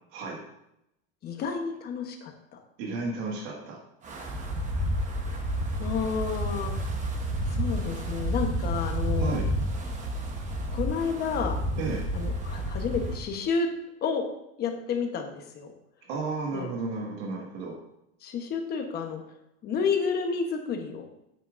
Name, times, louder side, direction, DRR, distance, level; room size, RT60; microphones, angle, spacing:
voice 1, 1.2-2.3 5.8-6.9 7.5-9.3 10.7-11.6 12.1-13.7 14.0-14.2 14.6-15.7 16.5-16.7 18.2-19.2 19.6-21.0, left 5 dB, 30° left, 4 dB, 1.1 m, -30 dB
voice 2, 2.8-3.8 9.2-9.5 11.8-12.0 16.1-17.8, right 3 dB, 70° right, -1 dB, 1.9 m, -33 dB
Wind, 4.0-13.2, equal, 25° right, 1.0 m, -30 dB
8.9 x 8.7 x 2.6 m, 0.81 s
cardioid pair, 170°, 31 cm